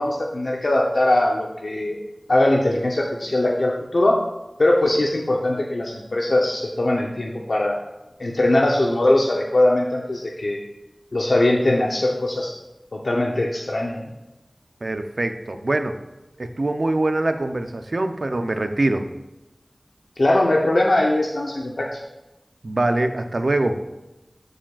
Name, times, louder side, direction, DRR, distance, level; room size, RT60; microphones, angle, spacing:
voice 1, 0.0-2.0 2.3-4.2 4.6-7.8 8.2-10.6 11.1-12.5 12.9-14.0 20.2-22.0, left 1 dB, 85° left, -1 dB, 0.7 m, -21 dB
voice 2, 14.8-16.0 16.4-19.1 22.6-23.8, right 2 dB, 75° right, 7 dB, 0.5 m, -23 dB
13.0 x 4.9 x 2.4 m, 1.0 s
wide cardioid pair, 50°, 0 cm